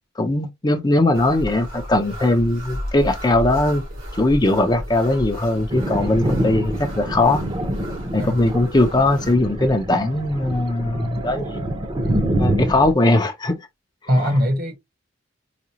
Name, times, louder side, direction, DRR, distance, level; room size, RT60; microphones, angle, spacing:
voice 1, 0.2-3.8 4.2-7.4 8.1-11.6 12.4-13.5 14.2-14.3, left 2 dB, 20° left, 0.6 m, -19 dB
sound 1, 1.1-9.3, equal, 90° right, 2.4 m, -34 dB
Thunder, 5.7-12.9, right 1 dB, 25° right, 0.8 m, -26 dB
voice 2, 14.1-14.7, equal, 50° right, 1.1 m, -21 dB
4.9 x 2.3 x 2.8 m
head